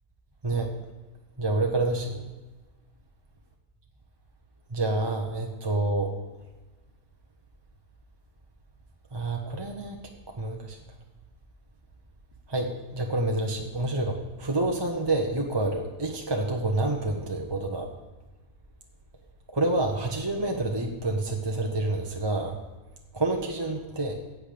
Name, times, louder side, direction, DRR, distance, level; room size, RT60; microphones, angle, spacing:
voice 1, 1.4-2.3 4.7-6.1 9.1-10.0 10.4-10.8 12.5-17.9 19.5-22.6 23.1-24.2, right 2 dB, 20° right, 1 dB, 0.8 m, -28 dB
15.0 x 8.4 x 5.1 m, 1.2 s
omnidirectional pair, 1.7 m